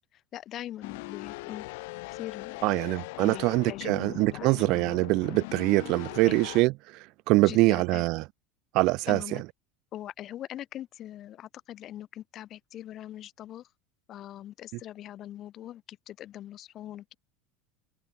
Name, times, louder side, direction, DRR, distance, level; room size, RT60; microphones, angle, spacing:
voice 1, 0.1-1.7 2.1-2.7 3.2-4.6 6.3-6.4 7.4-8.0 9.1-9.4 9.9-13.7 14.1-17.1, left 12 dB, 40° left, 3.5 m, -42 dB
sound 1, 0.8-6.6, left 25 dB, 75° left, 1.6 m, -40 dB
voice 2, 2.6-8.2 8.7-9.4, right 22 dB, 55° right, 0.3 m, -24 dB
supercardioid pair, 140°, 0 cm